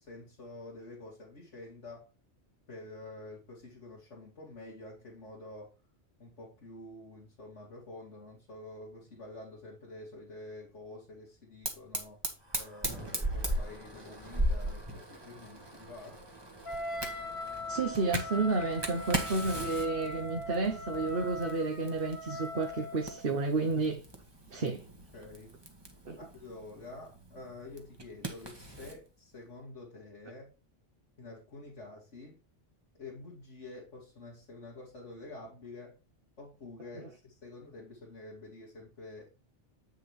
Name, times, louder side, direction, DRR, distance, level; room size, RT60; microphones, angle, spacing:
voice 1, 0.0-2.1 2.7-5.7 6.2-12.2 12.5-16.2 24.5-24.8 25.1-25.6 26.2-30.5 31.2-32.4 32.9-36.0 36.4-39.3, left 2 dB, 80° left, 2.9 m, -48 dB
Fire, 11.6-29.0, right 1 dB, 20° right, 1.6 m, -39 dB
Wind instrument woodwind instrument, 16.6-23.3, left 1 dB, 50° left, 2.0 m, -40 dB
voice 2, 17.7-24.0 24.5-24.8 26.1-26.2, right 3 dB, 50° right, 1.3 m, -31 dB
8.9 x 6.4 x 3.3 m
omnidirectional pair, 1.2 m